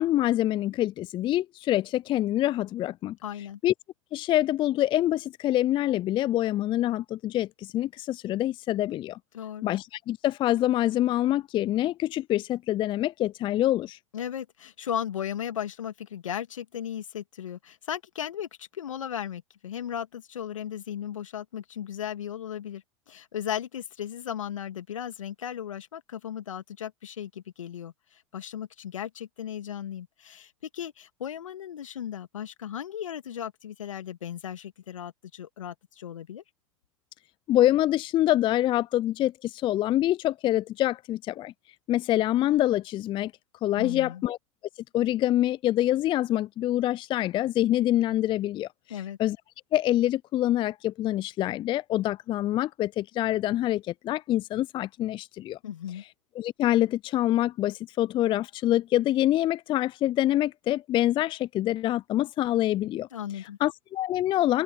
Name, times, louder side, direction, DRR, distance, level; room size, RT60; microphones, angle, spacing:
voice 1, 0.0-3.2 3.6-3.7 4.1-9.2 9.6-14.0 37.5-41.5 41.9-43.3 43.6-44.4 44.9-49.4 49.7-55.6 56.4-63.1 63.6-64.6, left 14 dB, 30° left, 0.5 m, -26 dB
voice 2, 3.2-3.6 9.3-9.7 14.1-36.4 43.8-44.2 48.9-49.2 55.6-56.0 63.1-63.6, left 9 dB, 75° left, 2.3 m, -36 dB
open air
figure-of-eight pair, 90°, 17 cm